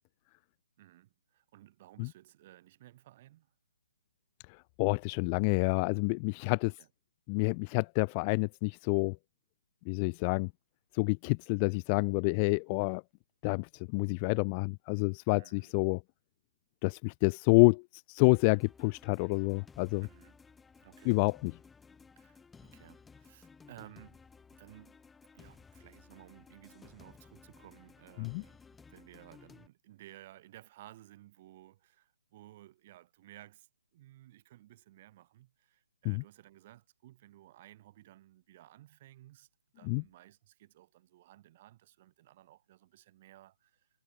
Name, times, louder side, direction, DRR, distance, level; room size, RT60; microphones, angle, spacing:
voice 1, 0.8-3.5 6.8-6.9 15.3-15.7 20.0-20.4 20.8-21.2 22.2-24.2 24.5-25.0 25.3-39.5 39.7-43.9, right 15 dB, 30° right, 4.8 m, -56 dB
voice 2, 4.8-6.7 7.3-9.2 9.9-10.5 11.0-13.0 13.4-13.7 13.9-16.0 16.8-17.8 18.1-20.1 21.1-21.5 28.2-28.4 36.1-36.2 39.9-40.0, left 34 dB, 20° left, 0.3 m, -28 dB
sound 1, 18.2-29.7, left 5 dB, 5° left, 3.8 m, -57 dB
figure-of-eight pair, 140°, 0 cm